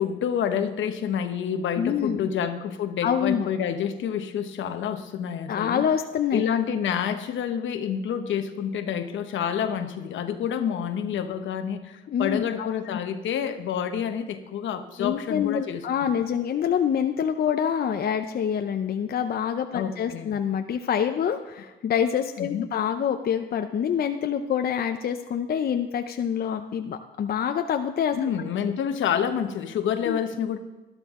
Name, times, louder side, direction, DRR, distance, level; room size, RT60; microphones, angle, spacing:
voice 1, 0.0-5.9 6.3-15.8 19.7-20.4 22.4-22.7 28.2-30.6, left 8 dB, 75° left, 9 dB, 1.0 m, -28 dB
voice 2, 1.8-2.3 3.0-3.5 5.5-6.4 12.1-12.7 15.0-28.2 30.1-30.2, left 8 dB, 50° left, 6 dB, 0.6 m, -26 dB
12.0 x 11.5 x 3.7 m, 1.1 s
cardioid pair, 90°, 20 cm